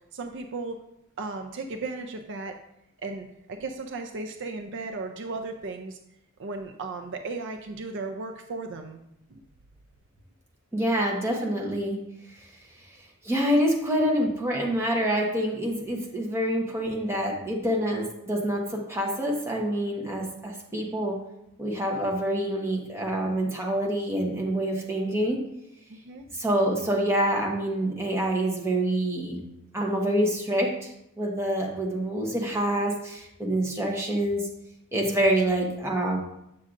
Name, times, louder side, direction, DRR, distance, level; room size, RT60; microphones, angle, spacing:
voice 1, 0.1-0.8 1.2-2.6 3.0-6.0 6.4-9.0 9.3-9.4 25.9-26.3, right 3 dB, 60° right, 5 dB, 0.5 m, -35 dB
voice 2, 10.7-12.0 13.2-21.2 21.6-25.4 26.3-29.4 29.7-30.9 31.2-34.4 34.9-36.2, right 1 dB, 15° right, -1 dB, 1.2 m, -26 dB
8.4 x 6.4 x 2.5 m, 0.80 s
head